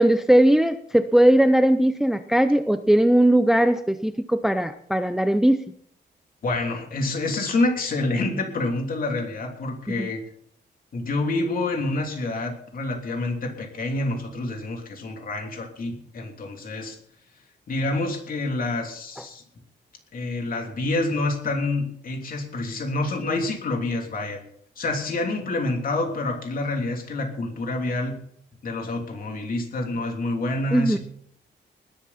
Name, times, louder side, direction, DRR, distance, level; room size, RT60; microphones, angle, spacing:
voice 1, 0.0-5.6 10.0-10.1 30.7-31.0, right 1 dB, ahead, 10 dB, 0.5 m, -19 dB
voice 2, 6.4-10.2 10.9-17.0 17.7-19.4 20.1-24.4 24.8-28.2 28.6-31.0, left 2 dB, 50° left, 3 dB, 3.2 m, -27 dB
20.0 x 11.0 x 4.2 m, 0.65 s
wide cardioid pair, 155°, 19 cm